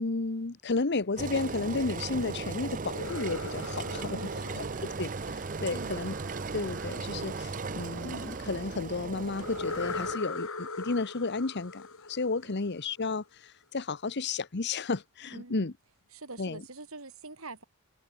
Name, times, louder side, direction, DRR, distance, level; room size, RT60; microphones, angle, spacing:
voice 1, 0.0-4.2 4.6-4.7 5.0-6.1 6.5-11.8 12.1-15.7 16.4-16.6, left 3 dB, 50° left, 1.0 m, -32 dB
Engine, 1.2-10.2, right 4 dB, 40° right, 0.8 m, -37 dB
sound 1, 2.8-5.7 9.4-13.1, left 3 dB, 75° left, 5.1 m, -40 dB
sound 2, 4.1-8.7, right 7 dB, 55° right, 7.7 m, -51 dB
voice 2, 4.1-4.5 5.7-6.0 12.4-12.5 15.3-15.7 16.1-17.6, right 2 dB, 75° right, 4.3 m, -45 dB
head